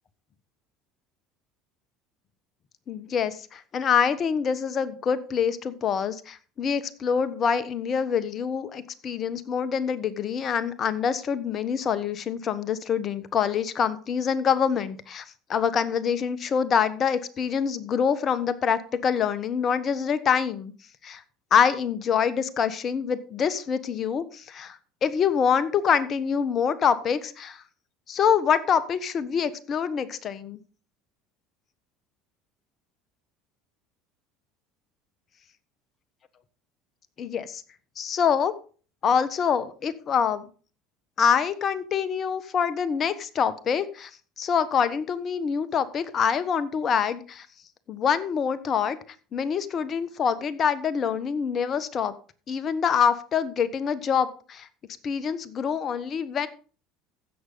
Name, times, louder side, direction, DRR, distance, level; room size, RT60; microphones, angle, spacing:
voice 1, 2.9-15.2 15.5-20.7 21.0-21.2 21.5-27.6 28.1-30.6 37.2-37.6 38.0-38.5 39.0-40.4 41.2-44.1 44.4-47.5 47.9-49.0 49.3-52.1 52.5-54.7 55.0-56.5, left 7 dB, 45° left, 13 dB, 1.2 m, -25 dB
15.5 x 6.5 x 4.0 m, 0.39 s
hypercardioid pair, 75°, 0 cm